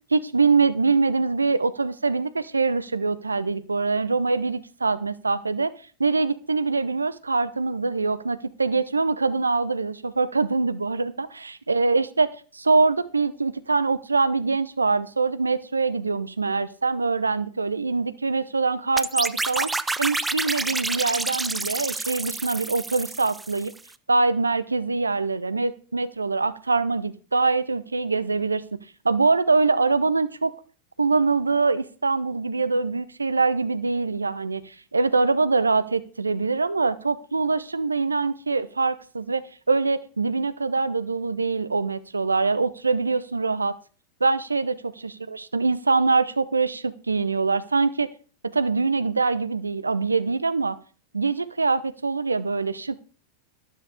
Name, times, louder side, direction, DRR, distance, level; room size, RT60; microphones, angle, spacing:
voice 1, 0.1-5.7 6.0-12.3 12.5-19.7 20.0-23.7 24.1-28.8 29.0-30.5 31.0-43.7 44.2-44.9 45.3-48.1 48.5-50.8 51.1-53.0, right 4 dB, 80° right, 16 dB, 0.7 m, -24 dB
sound 1, 19.0-23.8, right 3 dB, 10° right, 0.5 m, -29 dB
12.5 x 12.0 x 3.4 m, 0.39 s
figure-of-eight pair, 90°, 0 cm